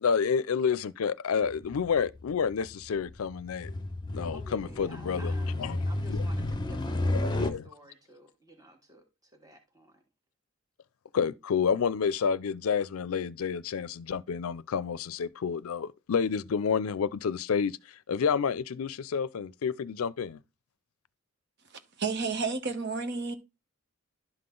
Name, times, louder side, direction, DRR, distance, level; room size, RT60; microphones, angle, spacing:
voice 1, 0.0-3.7 4.1-5.3 5.6-5.8 6.1-6.5 7.1-7.6 11.1-20.4, left 6 dB, 90° left, 0.5 m, -29 dB
sound 1, 1.4-7.5, left 1 dB, 20° left, 0.8 m, -32 dB
voice 2, 4.3-10.0, right 1 dB, 15° right, 1.5 m, -52 dB
voice 3, 22.0-23.4, right 4 dB, 55° right, 1.1 m, -31 dB
11.5 x 3.9 x 3.7 m
head